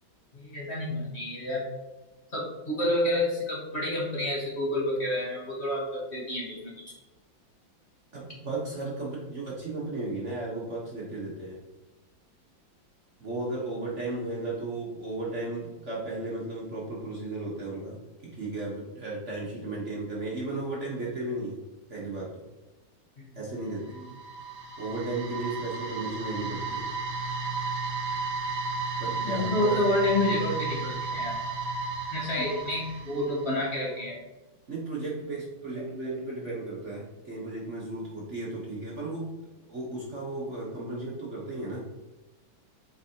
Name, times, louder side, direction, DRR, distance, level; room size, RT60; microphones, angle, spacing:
voice 1, 0.3-1.6 2.3-6.8 23.2-23.3 23.9-24.0 29.2-31.4 32.1-34.2, left 1 dB, 35° left, -5 dB, 1.5 m, -29 dB
voice 2, 8.1-11.6 13.2-21.6 21.9-22.4 23.3-23.9 24.8-26.9 29.0-29.8 32.4-32.5 34.7-39.3 39.7-41.8, right 2 dB, 40° right, -5 dB, 1.3 m, -35 dB
sound 1, 23.6-33.7, right 3 dB, 75° right, 1.6 m, -33 dB
8.0 x 4.5 x 2.9 m, 1.1 s
omnidirectional pair, 2.2 m